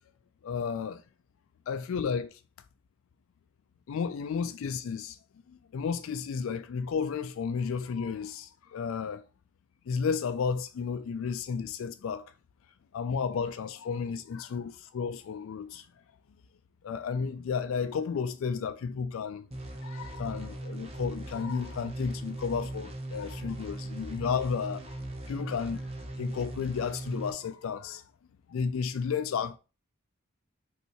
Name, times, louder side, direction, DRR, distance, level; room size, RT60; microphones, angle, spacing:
voice 1, 0.4-1.0 1.7-2.4 3.9-5.2 5.5-9.2 9.9-12.2 12.9-15.8 16.8-19.4 19.8-25.0 25.3-25.8 26.2-28.0 28.5-29.6, left 6 dB, 65° left, 0.3 m, -32 dB
sound 1, 19.5-27.3, right 1 dB, 30° right, 0.8 m, -39 dB
5.3 x 3.2 x 2.9 m
head